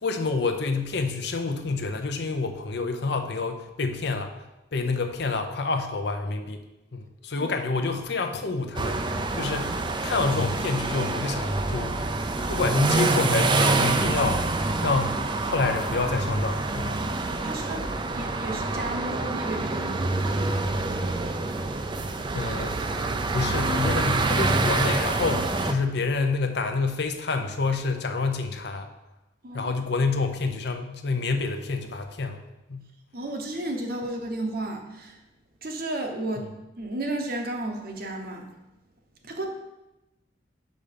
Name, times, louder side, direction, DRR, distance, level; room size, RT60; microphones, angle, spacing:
voice 1, 0.0-4.3 4.7-6.6 6.9-12.0 12.5-14.5 14.8-17.0 22.3-22.8 23.3-28.9 29.5-32.4 32.7-32.9 36.4-36.5, left 3 dB, 60° left, 6 dB, 0.6 m, -28 dB
sound 1, 8.8-25.7, right 2 dB, 25° right, 0.4 m, -26 dB
voice 2, 17.4-20.2 29.4-29.7 33.1-35.2 35.6-38.5 39.2-39.5, right 1 dB, 50° right, 3 dB, 0.9 m, -33 dB
5.5 x 5.2 x 5.1 m, 0.98 s
head